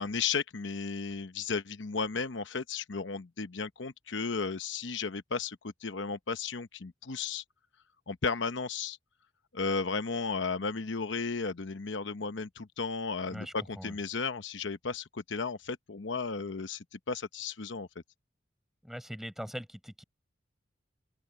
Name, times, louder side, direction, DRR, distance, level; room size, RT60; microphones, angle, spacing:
voice 1, 0.0-7.4 8.1-9.0 9.5-17.9, left 4 dB, 80° left, 0.9 m, -34 dB
voice 2, 13.3-14.0 18.8-20.0, equal, ahead, 5.3 m, -41 dB
open air
head